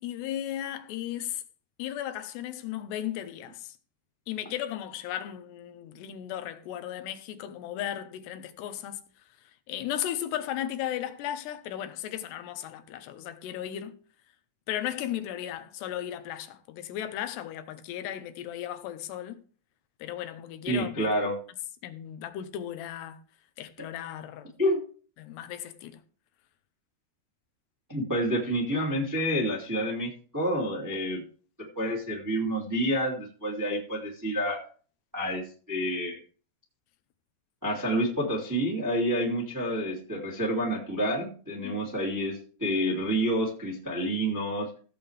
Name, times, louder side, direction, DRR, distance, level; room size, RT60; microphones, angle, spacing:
voice 1, 0.0-1.4 1.8-3.8 4.3-9.0 9.7-13.9 14.7-19.4 20.0-21.1 21.8-23.2 23.6-24.6 25.2-26.0 41.6-41.8, left 11 dB, 90° left, 3.1 m, -35 dB
voice 2, 20.7-21.4 24.6-24.8 27.9-31.2 31.7-34.6 35.1-35.4 35.7-36.2 37.6-44.7, equal, 5° right, 1.9 m, -28 dB
16.0 x 7.9 x 3.4 m
omnidirectional pair, 4.7 m